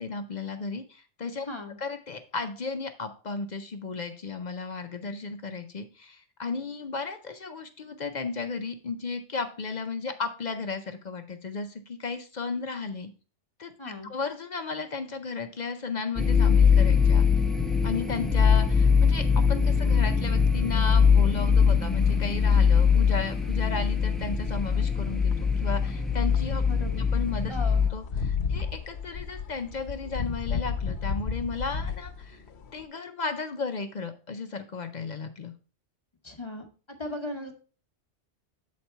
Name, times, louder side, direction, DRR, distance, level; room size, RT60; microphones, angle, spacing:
voice 1, 0.0-1.5 1.8-13.1 13.6-17.2 17.8-26.6 27.1-27.5 27.9-32.4 32.7-35.5, left 4 dB, 45° left, 7 dB, 0.6 m, -34 dB
voice 2, 1.5-1.8 13.8-14.1 26.6-27.1 27.5-27.8 36.2-37.5, left 2 dB, 25° left, 3 dB, 1.1 m, -37 dB
sound 1, 16.2-27.9, left 6 dB, ahead, 0.4 m, -22 dB
sound 2, 17.6-32.8, left 6 dB, 65° left, 1.0 m, -36 dB
7.5 x 4.2 x 4.4 m, 0.36 s
omnidirectional pair, 1.2 m